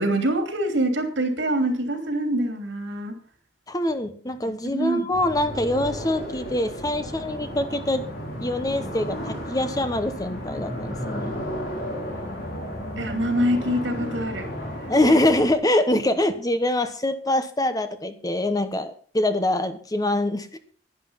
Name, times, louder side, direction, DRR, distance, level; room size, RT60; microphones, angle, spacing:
voice 1, 0.0-3.1 4.7-5.1 13.0-14.5 15.0-15.2, right 1 dB, 80° right, 6 dB, 3.1 m, -25 dB
voice 2, 3.7-8.0 8.4-11.4 14.9-20.6, left 1 dB, 20° left, 10 dB, 1.1 m, -24 dB
sound 1, 5.1-15.5, equal, 55° left, 4.4 m, -33 dB
11.5 x 10.0 x 5.7 m, 0.43 s
head